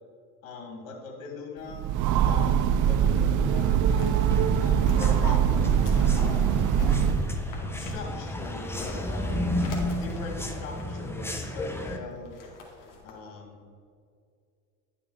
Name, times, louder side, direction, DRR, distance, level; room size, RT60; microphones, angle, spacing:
voice 1, 0.4-1.8 2.2-4.2 4.6-5.7 6.2-6.6 7.6-9.5 9.9-12.4 13.0-13.6, left 4 dB, 85° left, 1 dB, 1.7 m, -41 dB
Train, 1.7-7.4, right 8 dB, 50° right, 0.6 m, -23 dB
sound 1, 3.2-4.3 4.9-6.2 6.6-9.2 9.5-11.1 12.1-13.1, left 3 dB, 50° left, 2.1 m, -42 dB
sound 2, 4.2-12.0, left 1 dB, 5° left, 1.1 m, -33 dB
11.0 x 6.6 x 3.8 m, 2.3 s
supercardioid pair, 90°, 40 cm